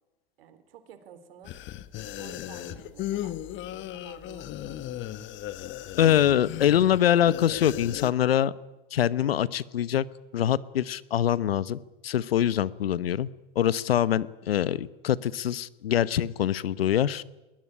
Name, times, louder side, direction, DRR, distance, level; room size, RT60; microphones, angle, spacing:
voice 1, 0.4-1.6 2.0-5.2, right 8 dB, 80° right, 11 dB, 3.7 m, -51 dB
sound 1, 1.4-8.1, left 13 dB, 40° left, 1.3 m, -36 dB
voice 2, 6.0-8.5 8.9-10.0 10.3-13.3 13.5-17.2, left 10 dB, 90° left, 19 dB, 1.0 m, -24 dB
21.5 x 19.5 x 10.0 m, 1.1 s
hypercardioid pair, 100°, 29 cm